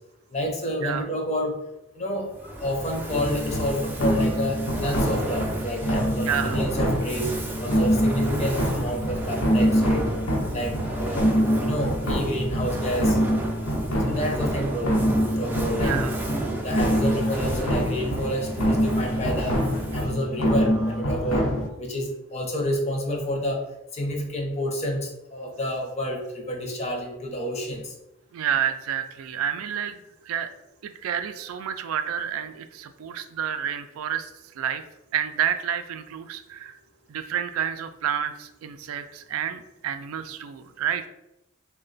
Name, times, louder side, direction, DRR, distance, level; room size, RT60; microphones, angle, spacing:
voice 1, 0.3-1.6 1.9-7.3 7.6-10.1 10.5-11.2 11.6-13.2 14.0-15.0 15.2-15.9 16.6-19.6 19.9-21.5 21.8-23.6 23.9-27.8, equal, 30° left, 1 dB, 0.6 m, -29 dB
Fire, 2.3-20.2, right 1 dB, 10° right, 0.4 m, -33 dB
sound 1, 3.1-21.7, equal, 90° left, 0.9 m, -25 dB
voice 2, 6.2-6.6 15.8-16.2 28.3-30.5 30.8-34.8 35.1-36.8 37.1-41.1, right 8 dB, 80° right, 9 dB, 0.3 m, -29 dB
3.1 x 2.2 x 3.8 m, 0.88 s
head